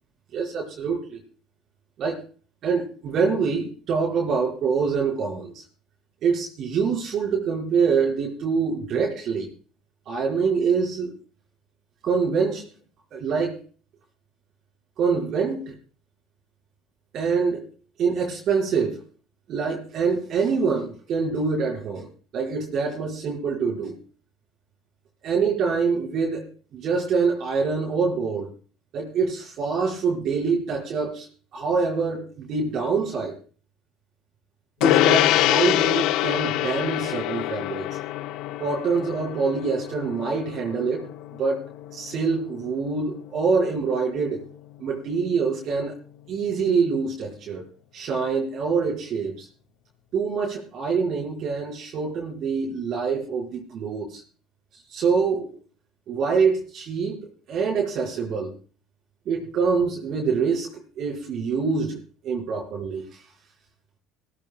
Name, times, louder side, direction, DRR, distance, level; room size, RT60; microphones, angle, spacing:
voice 1, 0.3-1.2 2.0-2.2 2.6-5.6 6.2-9.5 10.1-11.2 12.0-12.7 13.1-13.6 15.0-15.8 17.1-17.7 18.0-19.0 19.5-22.1 22.3-24.0 25.2-28.5 28.9-31.3 31.5-33.4 34.8-38.0 38.6-41.6 41.9-44.5 44.8-46.0 46.3-47.7 47.9-49.5 50.1-54.2 54.9-55.6 56.1-57.2 57.5-58.6 59.3-62.0 62.2-63.2, right 5 dB, 55° right, -3 dB, 5.1 m, -25 dB
Gong, 34.8-44.5, left 15 dB, 70° left, 0.6 m, -26 dB
18.0 x 14.5 x 2.3 m, 0.38 s
supercardioid pair, 80°, 0 cm